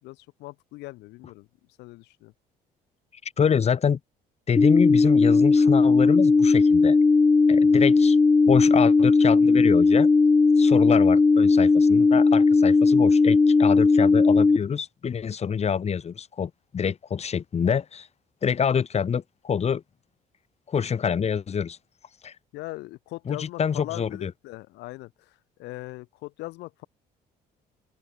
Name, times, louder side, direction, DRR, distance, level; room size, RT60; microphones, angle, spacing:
voice 1, 0.0-1.5 1.8-2.3 22.5-26.9, left 20 dB, 90° left, 4.5 m, -40 dB
voice 2, 3.2-4.0 4.5-7.0 7.5-8.2 8.5-10.1 10.6-18.1 18.4-19.8 20.7-21.8 22.2-22.4 23.3-24.3, left 7 dB, 40° left, 5.5 m, -26 dB
sound 1, 4.6-14.6, left 4 dB, 15° left, 0.7 m, -17 dB
open air
cardioid pair, 110°, 17 cm